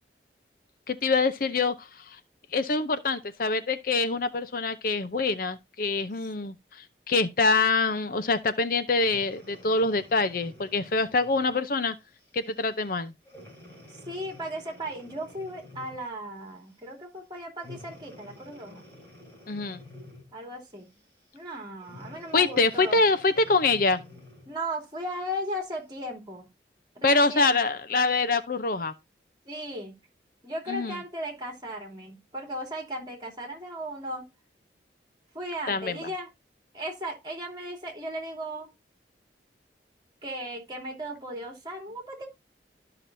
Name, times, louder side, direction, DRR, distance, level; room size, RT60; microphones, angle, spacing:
voice 1, 0.9-2.2 2.5-6.5 7.1-11.9 12.3-13.1 19.5-19.8 22.3-24.0 27.0-28.9 30.7-31.0 35.7-36.0, left 3 dB, 50° left, 0.6 m, -25 dB
Breathing, 8.9-11.6 12.2-12.4 13.2-16.1 17.6-20.4 21.8-24.5 25.2-25.3, left 1 dB, 15° left, 3.8 m, -49 dB
voice 2, 14.0-18.9 20.3-20.9 21.3-23.0 24.5-26.5 26.9-27.5 29.5-29.9 30.4-34.3 35.3-36.3 36.7-38.7 40.2-42.3, equal, 25° right, 2.7 m, -36 dB
12.5 x 5.8 x 2.6 m
head